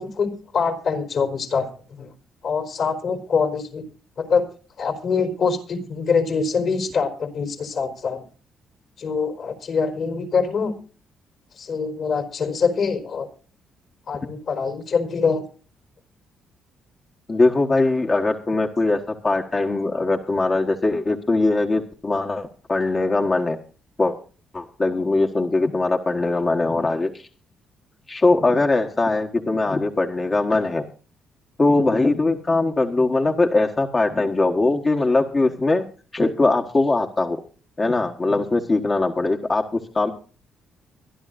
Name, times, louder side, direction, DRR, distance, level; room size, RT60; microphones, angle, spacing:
voice 1, 0.0-1.7 2.0-2.1 2.4-3.9 4.2-4.5 4.8-8.2 9.0-10.7 11.6-13.3 14.1-15.4, left 5 dB, 60° left, 5 dB, 4.0 m, -24 dB
voice 2, 17.3-23.6 24.0-24.1 24.5-27.3 28.1-30.8 31.6-35.8 36.1-37.4 37.8-40.1, left 2 dB, 30° left, 2 dB, 1.4 m, -21 dB
24.5 x 11.0 x 2.6 m, 0.39 s
cardioid pair, 90°, 0 cm